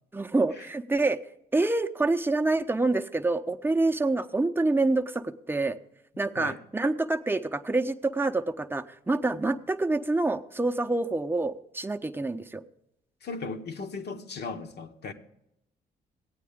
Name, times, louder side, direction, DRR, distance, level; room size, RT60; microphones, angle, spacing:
voice 1, 0.1-1.2 1.5-5.8 6.2-12.6, right 2 dB, 10° right, 0.7 m, -27 dB
voice 2, 13.2-15.1, left 4 dB, 55° left, 1.0 m, -37 dB
15.0 x 9.2 x 3.6 m
hypercardioid pair, 45°, 21 cm